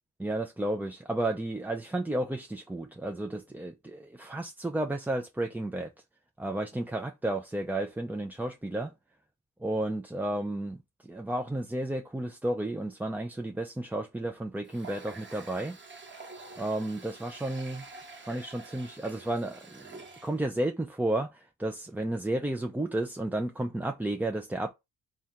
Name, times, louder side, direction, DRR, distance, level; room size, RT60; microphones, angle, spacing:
voice 1, 0.2-5.9 6.4-8.9 9.6-15.8 16.6-17.9 18.2-24.7, right 1 dB, 5° right, 0.4 m, -32 dB
Water tap faucet, 14.6-20.4, right 3 dB, 25° right, 1.1 m, -48 dB
3.5 x 2.4 x 4.4 m
supercardioid pair, 55°, 46 cm